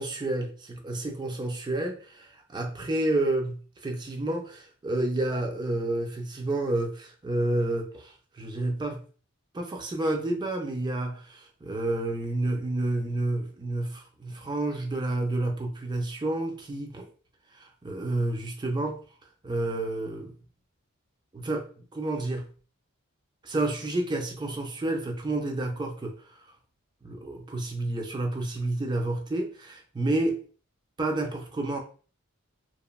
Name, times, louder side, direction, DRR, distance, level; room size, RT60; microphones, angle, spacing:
voice 1, 0.0-9.0 9.5-17.1 17.5-19.0 19.4-20.3 21.3-22.5 23.4-26.3 27.0-30.4 31.0-31.8, right 2 dB, 20° right, 0.4 m, -30 dB
2.9 x 2.1 x 2.2 m
head